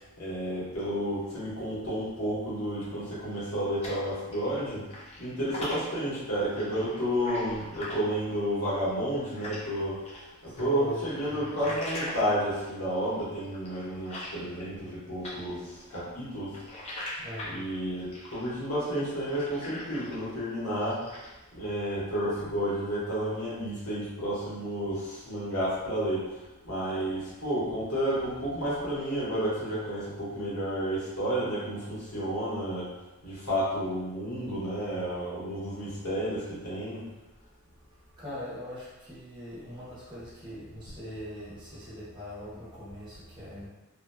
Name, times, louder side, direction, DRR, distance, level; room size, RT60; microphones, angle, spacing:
voice 1, 0.2-4.9 5.2-10.0 10.4-16.6 17.5-21.0 21.5-26.2 26.6-32.9 33.2-37.0, equal, 75° left, -9 dB, 1.1 m, -31 dB
sound 1, 3.3-4.6 4.9-9.7 10.0-14.9 15.2-20.3 20.7-21.4, left 1 dB, 30° left, 0.4 m, -42 dB
voice 2, 10.5-11.7 17.2-17.6 38.2-43.7, equal, 20° right, -10 dB, 0.9 m, -41 dB
2.8 x 2.2 x 2.2 m, 1.0 s
head